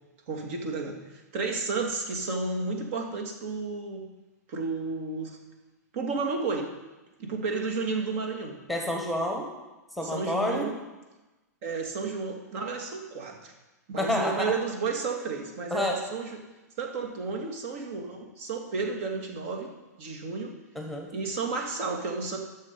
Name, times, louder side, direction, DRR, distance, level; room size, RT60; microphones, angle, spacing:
voice 1, 0.3-4.1 4.5-5.4 5.9-6.7 7.2-8.6 10.0-10.8 11.6-13.5 13.9-16.4 16.8-19.7 20.0-20.5 21.1-22.4, right 4 dB, 50° right, 2 dB, 2.1 m, -32 dB
voice 2, 8.7-9.5 10.0-10.7 14.0-14.5 15.7-16.0 20.7-21.1, left 1 dB, ahead, 1 dB, 1.6 m, -28 dB
12.5 x 6.7 x 5.3 m, 1.1 s
figure-of-eight pair, 110°, 9 cm